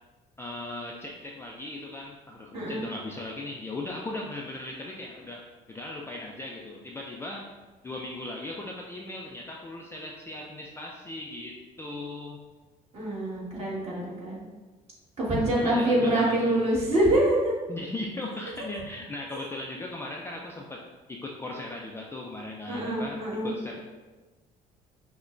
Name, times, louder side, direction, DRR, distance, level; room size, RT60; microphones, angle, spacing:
voice 1, 0.4-5.4 5.7-7.4 7.8-12.4 15.6-16.6 17.7-20.8 21.1-23.8, left 2 dB, 15° left, -2 dB, 0.3 m, -38 dB
voice 2, 2.5-2.8 12.9-14.5 15.2-17.5 22.7-23.5, right 1 dB, 35° right, -6 dB, 1.5 m, -25 dB
5.7 x 2.2 x 2.5 m, 1.2 s
cardioid pair, 110°, 17 cm